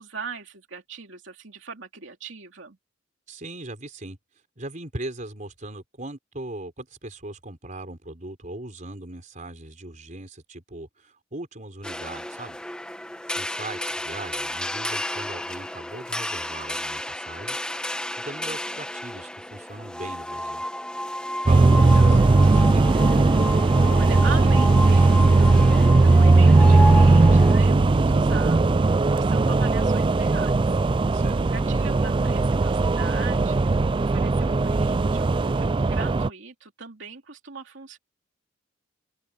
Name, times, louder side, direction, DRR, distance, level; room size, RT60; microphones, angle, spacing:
voice 1, 0.0-2.8 18.4-18.8 21.7-22.2 23.8-25.5 25.8-30.8 31.3-38.0, right 4 dB, 80° right, 2.7 m, -39 dB
voice 2, 3.3-4.2 4.6-12.6 13.3-17.6 18.2-20.6 21.5-22.9 31.1-31.4, right 2 dB, 40° right, 4.2 m, -39 dB
sound 1, 11.8-27.5, left 1 dB, 5° left, 1.4 m, -32 dB
sound 2, 21.5-36.3, right 3 dB, 25° right, 0.4 m, -18 dB
open air
head